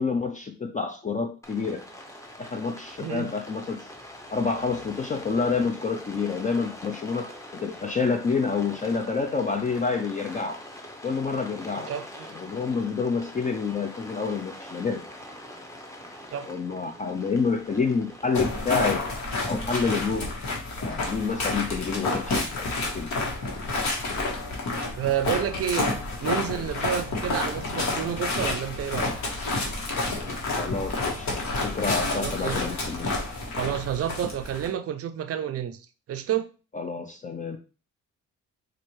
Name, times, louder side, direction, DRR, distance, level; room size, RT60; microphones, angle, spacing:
voice 1, 0.0-1.9 2.4-3.9 4.3-10.6 11.0-11.9 12.3-15.0 16.5-19.0 19.5-20.3 20.8-23.1 30.5-33.3 36.7-37.6, left 4 dB, 25° left, 0.5 m, -28 dB
Rain, 1.4-19.0, left 1 dB, 10° left, 0.9 m, -44 dB
voice 2, 11.9-12.4 16.3-16.5 25.0-25.9 26.2-29.1 32.1-32.6 33.5-36.5, right 9 dB, 50° right, 0.5 m, -30 dB
sound 1, 18.3-34.7, left 2 dB, 65° left, 1.4 m, -29 dB
4.3 x 2.5 x 3.1 m
cardioid pair, 90°, 30 cm